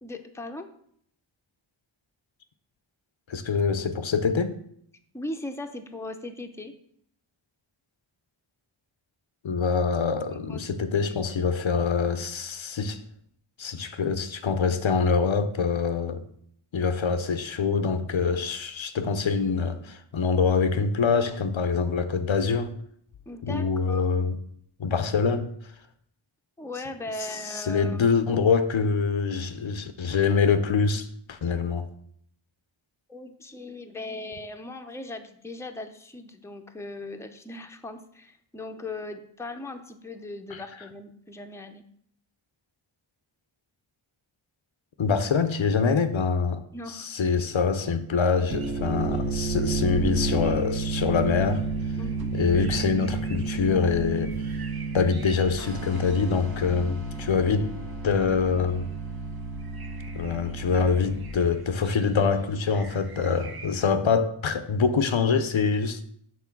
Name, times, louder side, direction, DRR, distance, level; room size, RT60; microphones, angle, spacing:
voice 1, 0.0-0.7 5.1-6.7 10.3-10.6 11.0-11.1 23.3-24.1 26.6-28.1 33.1-41.8 46.7-47.1 52.0-52.3 57.1-57.2, left 2 dB, 5° left, 0.6 m, -38 dB
voice 2, 3.3-4.6 9.4-13.0 13.6-16.2 16.7-22.7 23.4-24.4 24.8-25.5 27.3-31.9 40.5-40.6 45.0-46.6 46.9-51.6 52.3-54.4 54.9-57.7 58.0-58.9 60.1-66.0, left 5 dB, 70° left, 0.6 m, -25 dB
sound 1, 48.4-61.3, right 4 dB, 75° right, 1.8 m, -31 dB
sound 2, 48.5-63.9, right 2 dB, 50° right, 0.7 m, -45 dB
6.0 x 3.8 x 5.9 m
wide cardioid pair, 40°, 49 cm